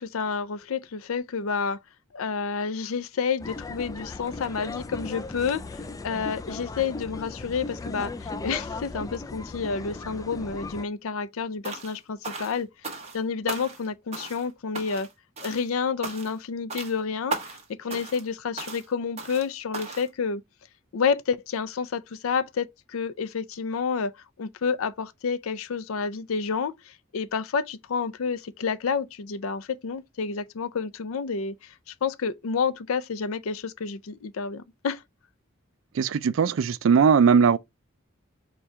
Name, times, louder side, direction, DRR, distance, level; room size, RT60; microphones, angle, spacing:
voice 1, 0.0-1.8 2.1-15.1 15.4-20.4 20.9-24.1 24.4-35.0, left 5 dB, 75° left, 0.5 m, -29 dB
sound 1, 3.4-10.8, left 3 dB, 15° left, 0.3 m, -37 dB
sound 2, 11.6-12.0 12.2-13.2 13.5-13.9 14.1-14.5 14.8-15.1 15.4-15.7 16.0-16.4 16.7-17.0 17.3-17.6 17.9-18.3 18.6-18.9 19.2-19.5 19.7-20.1, right 3 dB, 30° right, 1.0 m, -36 dB
voice 2, 36.0-37.6, right 6 dB, 65° right, 0.4 m, -19 dB
4.4 x 2.3 x 4.6 m
head